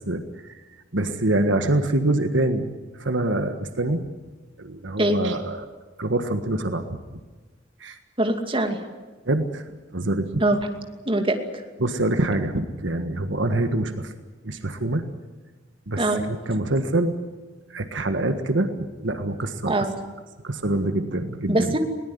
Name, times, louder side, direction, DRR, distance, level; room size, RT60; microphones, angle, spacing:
voice 1, 0.9-2.7 3.0-4.1 4.6-5.7 6.0-7.0 7.8-8.0 9.3-9.6 9.9-10.4 11.8-14.1 14.4-15.0 15.9-16.0 16.3-17.1 17.7-18.7 19.0-19.7 20.4-21.7, right 1 dB, 75° right, 7 dB, 1.6 m, -25 dB
voice 2, 8.2-8.8 10.4-10.7 11.1-11.4 16.0-16.2 19.7-19.9 21.5-21.8, right 1 dB, 30° right, 5 dB, 2.5 m, -22 dB
21.5 x 19.0 x 9.7 m, 1.3 s
head